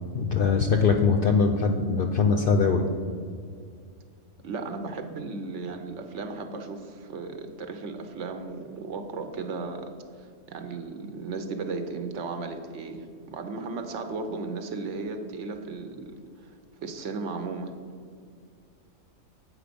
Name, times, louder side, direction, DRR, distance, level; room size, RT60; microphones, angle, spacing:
voice 1, 0.1-2.8, left 5 dB, 65° left, 4 dB, 0.5 m, -22 dB
voice 2, 4.4-9.9 10.2-16.2 16.4-17.7, right 4 dB, 65° right, 6 dB, 1.0 m, -35 dB
8.1 x 5.0 x 5.1 m, 2.2 s
omnidirectional pair, 1.4 m